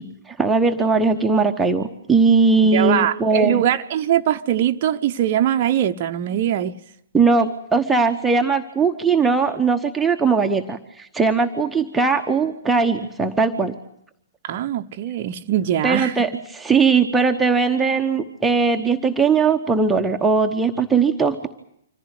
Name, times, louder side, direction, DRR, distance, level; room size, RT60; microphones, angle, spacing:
voice 1, 0.0-3.6 7.1-13.8 15.8-21.5, right 4 dB, 5° right, 1.1 m, -19 dB
voice 2, 2.7-6.8 14.4-16.2, right 11 dB, 40° right, 0.8 m, -21 dB
25.5 x 15.0 x 9.5 m
figure-of-eight pair, 115°, 0 cm